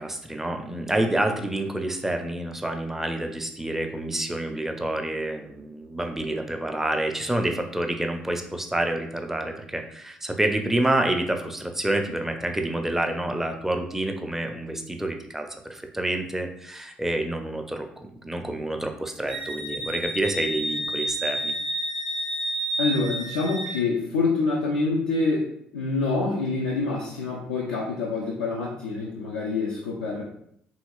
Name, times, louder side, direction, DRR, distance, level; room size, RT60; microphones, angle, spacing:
voice 1, 0.0-21.5, right 1 dB, 5° right, 4 dB, 0.4 m, -28 dB
Wind instrument woodwind instrument, 19.3-23.8, right 1 dB, 85° right, 0.3 m, -30 dB
voice 2, 22.8-25.4 25.7-30.2, left 3 dB, 80° left, -4 dB, 0.4 m, -26 dB
3.0 x 2.8 x 2.3 m, 0.70 s
figure-of-eight pair, 50°, 4 cm